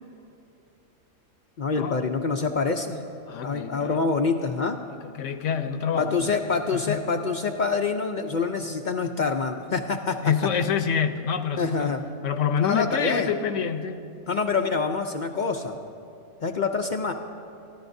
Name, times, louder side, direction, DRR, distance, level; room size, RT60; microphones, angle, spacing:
voice 1, 1.6-3.0 3.4-4.8 6.0-10.3 11.6-12.0 12.6-13.3 14.3-15.8 16.4-17.1, left 4 dB, 55° left, 5 dB, 0.5 m, -26 dB
voice 2, 3.3-4.0 5.0-6.3 6.7-7.0 10.2-11.9 12.2-14.0, left 7 dB, 75° left, 9 dB, 1.0 m, -27 dB
25.0 x 14.0 x 2.6 m, 2.7 s
omnidirectional pair, 1.3 m